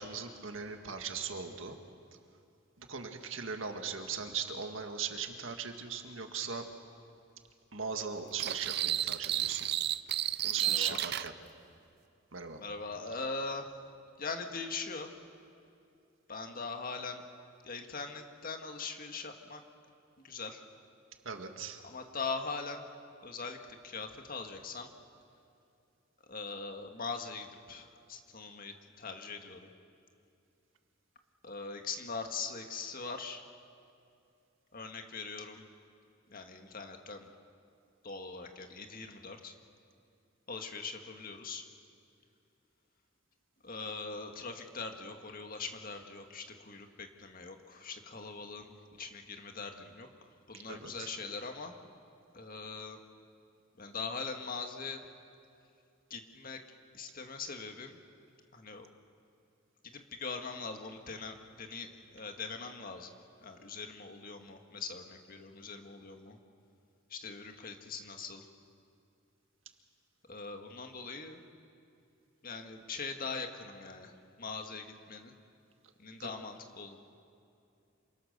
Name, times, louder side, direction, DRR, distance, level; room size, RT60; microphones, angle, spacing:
voice 1, 0.0-1.8 2.8-6.7 7.7-9.7 10.4-11.3 12.3-12.6 21.3-21.8 50.7-51.1 76.2-76.3, right 6 dB, 75° right, 5 dB, 1.8 m, -39 dB
sound 1, 8.4-11.3, right 12 dB, 55° right, 0.5 m, -32 dB
voice 2, 10.6-11.0 12.6-13.7 14.2-15.1 16.3-17.2 17.6-19.6 20.2-20.6 21.8-22.9 23.2-24.9 26.3-29.7 31.4-33.4 34.7-35.6 36.3-37.3 38.0-39.6 40.5-41.7 43.6-48.7 49.0-50.1 50.5-51.8 52.3-53.0 53.8-55.0 56.1-56.6 56.9-58.0 58.5-58.9 59.8-63.1 63.4-66.4 67.1-68.5 70.3-71.4 72.4-74.1 74.4-75.3 76.0-77.0, left 4 dB, 45° left, 5 dB, 1.8 m, -41 dB
27.5 x 23.5 x 6.7 m, 2.5 s
head